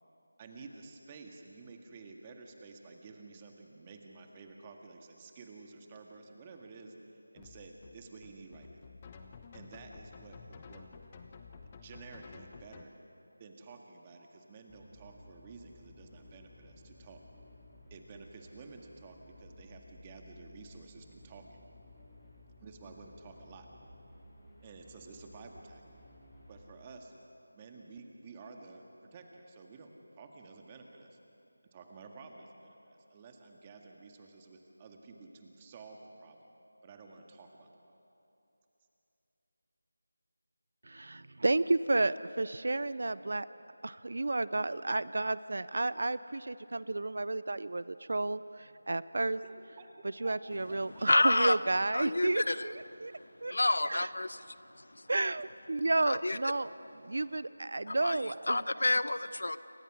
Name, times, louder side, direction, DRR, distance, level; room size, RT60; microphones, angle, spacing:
voice 1, 0.4-6.9 7.3-8.8 9.5-10.9 11.8-12.9 13.4-17.2 17.9-21.6 22.6-23.7 24.6-25.8 26.5-27.2 27.5-28.9 29.1-31.2 31.7-36.4 36.8-37.7 49.4-49.9 50.2-51.0, right 4 dB, 20° right, 2 dB, 1.9 m, -51 dB
sound 1, 7.3-12.8, left 5 dB, 25° left, 1.1 m, -52 dB
sound 2, 14.7-26.7, left 1 dB, 5° left, 6.4 m, -56 dB
voice 2, 40.9-43.5 43.8-49.4 50.2-52.7 53.0-53.1 53.4-53.6 53.9-54.1 55.1-56.7 57.0-58.6, right 2 dB, 60° right, 16 dB, 0.6 m, -31 dB
voice 3, 51.1-51.6 51.9-52.7 53.5-54.5 54.9-55.0 56.1-56.4 57.9-58.2 58.5-59.6, left 2 dB, 70° left, 14 dB, 0.9 m, -29 dB
28.0 x 24.0 x 6.3 m, 2.9 s
figure-of-eight pair, 170°, 0 cm